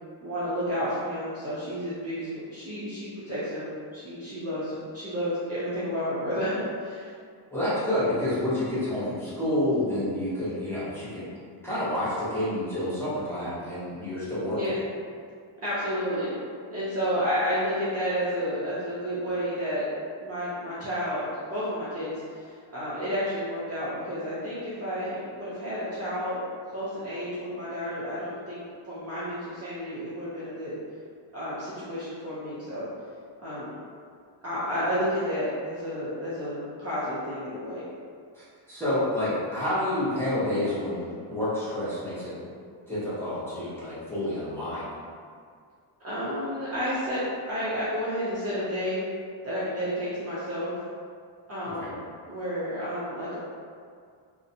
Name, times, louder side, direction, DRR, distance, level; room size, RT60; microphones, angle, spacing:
voice 1, 0.2-7.1 14.5-14.8 15.6-16.3 16.7-19.9 20.2-21.2 21.5-26.4 26.7-30.7 31.3-32.9 33.4-33.7 34.4-37.8 46.0-49.0 49.4-50.8 51.5-52.0 52.3-53.4, equal, 30° right, -11 dB, 0.4 m, -31 dB
voice 2, 7.5-11.3 11.6-14.6 38.4-42.3 42.9-44.9 51.8-51.9, left 1 dB, 5° left, -12 dB, 0.7 m, -29 dB
2.5 x 2.1 x 2.6 m, 2.1 s
wide cardioid pair, 150°, 50 cm